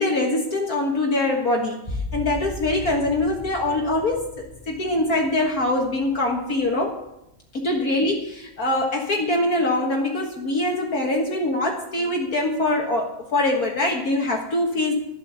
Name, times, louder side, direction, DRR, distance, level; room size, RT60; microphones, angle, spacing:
voice 1, 0.0-1.8 2.1-7.0 7.5-14.9, left 2 dB, 55° left, 0 dB, 2.0 m, -23 dB
sound 1, 1.8-7.3 7.8-8.4, left 1 dB, 20° left, 1.7 m, -37 dB
12.0 x 11.5 x 6.9 m, 0.86 s
omnidirectional pair, 1.9 m